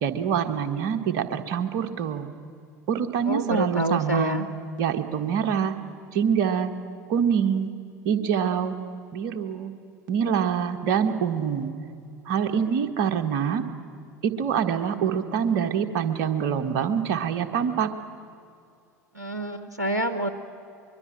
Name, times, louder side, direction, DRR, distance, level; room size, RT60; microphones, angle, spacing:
voice 1, 0.0-2.3 2.9-4.4 4.8-5.7 6.1-6.7 7.1-7.7 8.0-8.8 9.1-9.7 10.1-11.7 12.2-13.6 14.2-17.9, right 8 dB, 50° right, 7 dB, 1.5 m, -25 dB
voice 2, 3.2-4.5 19.1-20.3, right 1 dB, 90° right, 10 dB, 0.9 m, -27 dB
24.0 x 22.5 x 8.8 m, 2.5 s
figure-of-eight pair, 75°, 9 cm